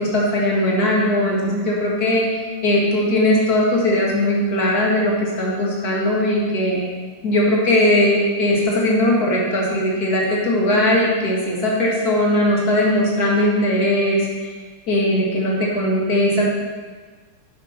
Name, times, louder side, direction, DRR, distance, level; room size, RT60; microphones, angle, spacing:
voice 1, 0.0-2.3 2.6-6.8 7.2-14.5 14.9-16.5, left 1 dB, 45° left, -3 dB, 2.3 m, -19 dB
9.6 x 6.0 x 5.8 m, 1.4 s
omnidirectional pair, 2.4 m